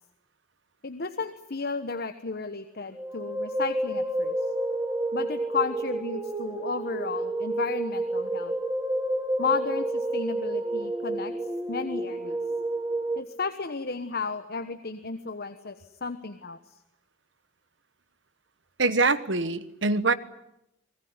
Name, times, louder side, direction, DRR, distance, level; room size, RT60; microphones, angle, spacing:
voice 1, 0.8-4.4 5.1-8.5 9.4-11.3 11.7-12.4 13.2-16.6, left 4 dB, 55° left, 9 dB, 1.2 m, -33 dB
sound 1, 2.9-13.2, right 1 dB, 15° right, 1.6 m, -30 dB
voice 2, 18.8-20.1, right 3 dB, 70° right, 14 dB, 1.3 m, -24 dB
26.5 x 20.0 x 9.7 m, 0.83 s
head